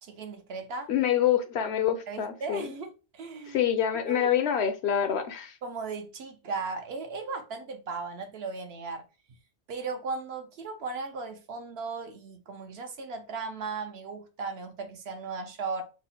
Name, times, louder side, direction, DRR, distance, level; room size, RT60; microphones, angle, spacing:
voice 1, 0.0-0.9 2.1-3.6 4.1-4.3 5.6-9.0 9.7-15.8, right 4 dB, 65° right, 0.8 m, -36 dB
voice 2, 0.9-2.7 3.5-5.6, left 9 dB, 65° left, 0.8 m, -26 dB
3.6 x 2.1 x 4.0 m
omnidirectional pair, 1.3 m